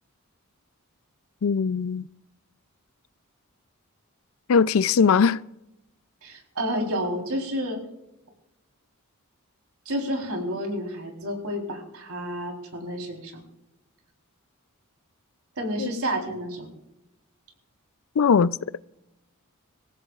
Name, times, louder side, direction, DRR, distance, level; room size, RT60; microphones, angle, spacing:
voice 1, 1.4-2.1 4.5-5.4 15.8-15.9 18.2-18.6, left 6 dB, 65° left, 0.4 m, -20 dB
voice 2, 6.2-7.8 9.9-13.3 15.6-16.7, equal, 80° right, 3.8 m, -30 dB
26.5 x 15.0 x 2.4 m
head